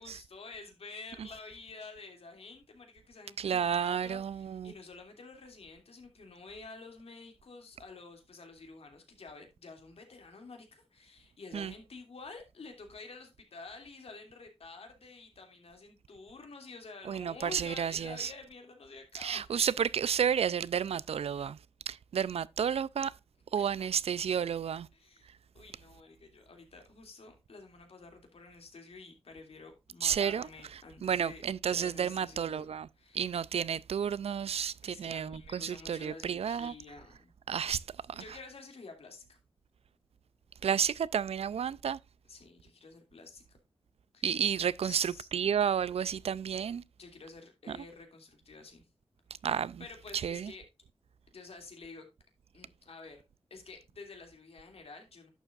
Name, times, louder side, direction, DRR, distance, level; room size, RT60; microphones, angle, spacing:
voice 1, 0.0-19.5 23.5-23.9 24.9-33.3 34.8-37.3 38.1-39.4 42.3-43.6 44.1-44.4 44.8-45.3 47.0-48.9 49.8-50.6 51.3-52.1 52.5-53.2 53.5-55.3, left 4 dB, 75° left, 2.5 m, -50 dB
voice 2, 3.4-4.7 11.5-11.7 17.1-18.3 19.1-21.6 21.9-23.1 23.5-24.9 30.0-30.5 31.0-32.9 33.1-36.7 37.5-37.8 40.6-42.0 44.2-46.8 47.7-47.8 49.4-49.8 50.1-50.5, right 8 dB, 80° right, 0.4 m, -31 dB
11.0 x 7.3 x 2.4 m
cardioid pair, 65°, 10 cm